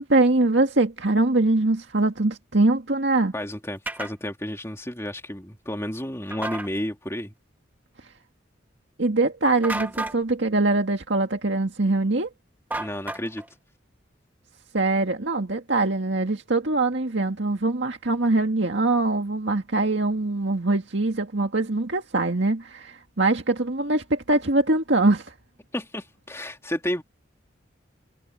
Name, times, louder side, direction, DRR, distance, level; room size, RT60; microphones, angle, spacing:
voice 1, 0.0-3.3 9.0-12.3 14.7-25.3, right 2 dB, 70° right, 2.0 m, -23 dB
voice 2, 3.3-7.3 12.8-13.4 25.7-27.0, left 1 dB, 15° left, 2.6 m, -31 dB
sound 1, 3.9-4.1 6.3-6.7 9.6-10.2 12.7-13.5, right 2 dB, 10° right, 1.2 m, -31 dB
head